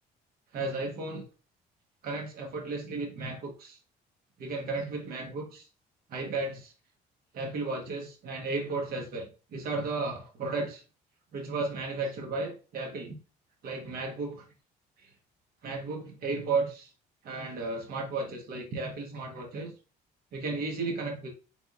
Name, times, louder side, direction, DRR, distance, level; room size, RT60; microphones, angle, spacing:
voice 1, 0.5-1.3 2.0-3.8 4.4-5.7 6.1-6.7 7.3-10.8 11.3-13.2 13.6-14.5 15.0-15.1 15.6-16.9 17.2-19.7 20.3-21.3, right 3 dB, 65° right, 0 dB, 1.2 m, -34 dB
4.2 x 3.3 x 2.5 m, 0.34 s
cardioid pair, 110°, 17 cm